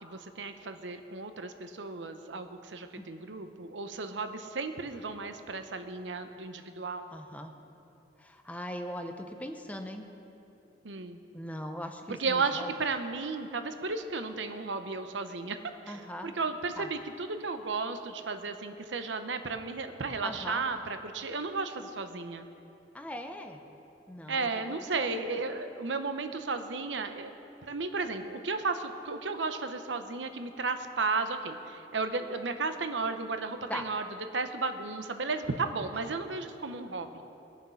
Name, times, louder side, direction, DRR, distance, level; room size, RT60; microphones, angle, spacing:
voice 1, 0.0-7.1 10.8-11.2 12.2-15.6 15.9-22.5 24.3-27.3 27.6-34.0 34.3-37.2, right 4 dB, 85° right, 8 dB, 0.8 m, -34 dB
voice 2, 7.1-7.5 8.2-10.1 11.3-12.7 15.9-16.4 16.8-16.9 20.2-20.6 22.9-23.6 24.1-25.4 33.7-33.9 35.9-36.0, equal, 10° left, 5 dB, 0.8 m, -40 dB
21.5 x 7.2 x 5.7 m, 2.8 s
head